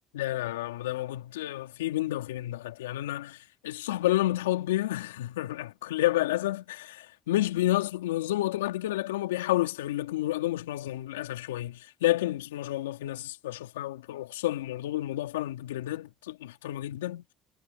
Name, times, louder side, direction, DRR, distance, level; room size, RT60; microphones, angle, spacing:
voice 1, 0.1-3.4 3.6-17.2, left 15 dB, 90° left, 3.6 m, -30 dB
hypercardioid pair, 60°, 0 cm